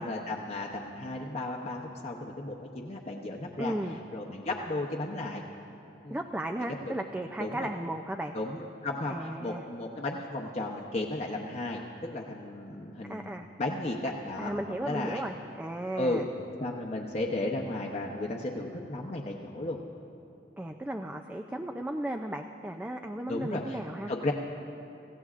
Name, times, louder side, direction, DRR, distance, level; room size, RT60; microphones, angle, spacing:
voice 1, 0.0-3.7 4.1-5.4 6.0-6.2 6.8-6.9 7.4-7.7 8.3-13.3 13.6-14.6 14.8-15.2 16.0-16.2 16.6-19.8 23.3-23.8 24.1-24.3, left 2 dB, 40° left, -2 dB, 0.8 m, -34 dB
voice 2, 3.6-4.0 6.1-8.3 9.1-9.7 13.1-13.5 14.0-16.3 20.6-24.1, right 1 dB, 10° right, 4 dB, 0.4 m, -35 dB
25.5 x 15.5 x 2.5 m, 2.8 s
head